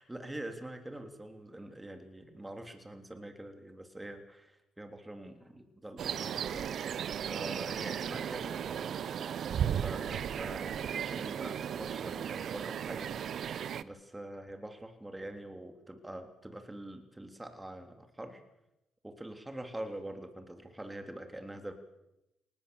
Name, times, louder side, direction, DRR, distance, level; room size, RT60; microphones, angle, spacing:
voice 1, 0.0-6.9 7.2-8.9 9.7-18.4 19.0-21.7, right 1 dB, 15° right, 5 dB, 3.3 m, -45 dB
sound 1, 6.0-13.8, right 8 dB, 60° right, 0.8 m, -35 dB
22.5 x 19.5 x 7.1 m, 0.91 s
hypercardioid pair, 55°, 0 cm